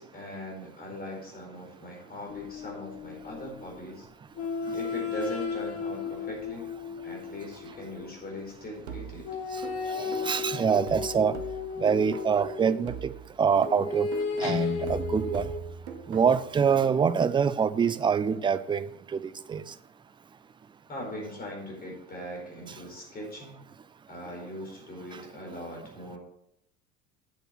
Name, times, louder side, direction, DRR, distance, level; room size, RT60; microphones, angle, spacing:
voice 1, 0.0-4.1 4.7-6.7 7.0-9.3 20.9-23.6 24.1-26.2, left 1 dB, 25° left, 4.4 m, -40 dB
sound 1, 2.3-3.7 4.4-8.2 9.2-12.9 13.6-15.6, left 5 dB, 40° left, 1.7 m, -35 dB
sound 2, 8.9-12.5 12.9-16.5, right 6 dB, 70° right, 1.1 m, -43 dB
voice 2, 9.9-11.4 11.8-13.1 13.4-14.1 14.4-15.5 16.1-18.8 19.1-19.2 19.5-19.6, right 6 dB, 15° right, 0.4 m, -25 dB
Guitar, 14.4-16.5, left 3 dB, 70° left, 2.7 m, -35 dB
8.2 x 7.1 x 5.9 m
figure-of-eight pair, 65°, 36 cm